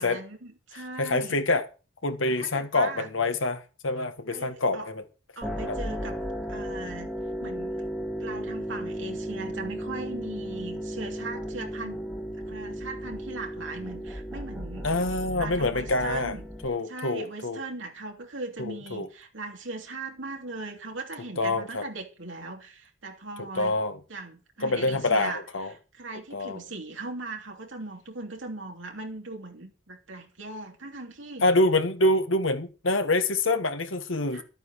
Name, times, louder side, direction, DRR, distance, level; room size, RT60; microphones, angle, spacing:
voice 1, 0.0-1.4 2.3-3.1 4.3-4.9 5.4-6.2 6.5-7.1 7.4-7.8 8.2-12.0 12.5-14.9 15.4-16.5 16.8-23.7 24.1-25.4 25.7-31.4 34.3-34.4, right 3 dB, 75° right, 2.9 m, -39 dB
voice 2, 1.0-1.7 2.0-5.0 5.7-5.8 14.8-16.3 16.6-17.6 18.7-19.1 21.4-21.8 23.4-24.0 24.6-25.7 26.3-26.6 31.4-34.4, left 2 dB, 85° left, 1.8 m, -26 dB
sound 1, 5.4-16.7, equal, ahead, 2.7 m, -35 dB
12.0 x 9.0 x 6.6 m
head